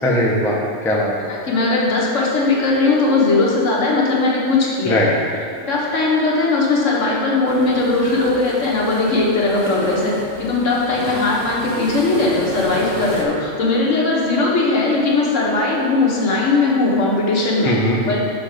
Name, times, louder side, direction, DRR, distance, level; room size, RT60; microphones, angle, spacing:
voice 1, 0.0-1.1 4.8-5.1 17.6-18.2, left 1 dB, ahead, -3 dB, 0.6 m, -19 dB
voice 2, 1.3-5.1 5.7-17.8 18.1-18.2, left 3 dB, 65° left, -4 dB, 1.5 m, -18 dB
sound 1, 7.5-13.2, right 2 dB, 50° right, 0.9 m, -33 dB
6.0 x 5.7 x 5.0 m, 2.4 s
omnidirectional pair, 1.4 m